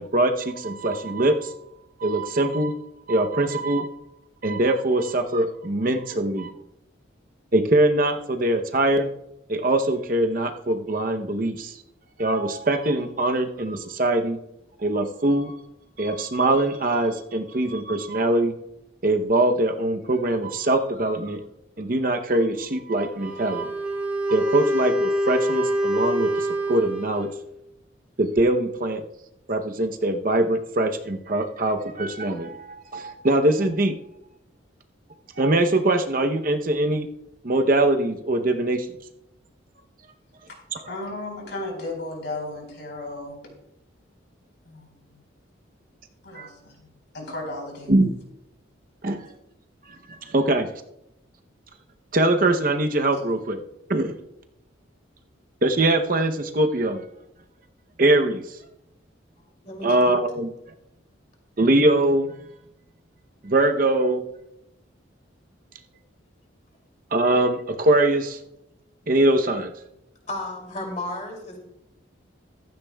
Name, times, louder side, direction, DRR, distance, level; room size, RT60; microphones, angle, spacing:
voice 1, 0.0-1.5 2.0-2.7 3.1-3.9 4.4-6.5 7.5-9.1 9.5-11.8 12.2-14.4 14.8-15.6 16.0-18.5 19.0-21.4 21.8-23.7 24.3-27.3 28.2-29.0 29.5-33.9 35.4-37.1 37.4-38.9 40.7-40.8 46.3-46.5 47.9-48.1 49.0-49.3 50.1-50.7 52.1-53.6 53.9-54.1 55.6-57.0 58.0-58.6 59.8-60.5 61.6-62.3 63.4-64.2 67.1-68.4 69.1-69.7, right 1 dB, 45° right, 5 dB, 0.7 m, -22 dB
Wind instrument woodwind instrument, 23.1-27.4, equal, 10° right, 2.0 m, -25 dB
voice 2, 40.9-43.4 44.6-45.2 46.2-46.9 47.1-47.9 53.1-53.2, left 2 dB, 65° left, 1 dB, 4.4 m, -35 dB
voice 3, 59.6-60.1 70.3-71.6, left 2 dB, 35° left, 1 dB, 2.7 m, -33 dB
15.0 x 13.5 x 2.3 m, 0.83 s
head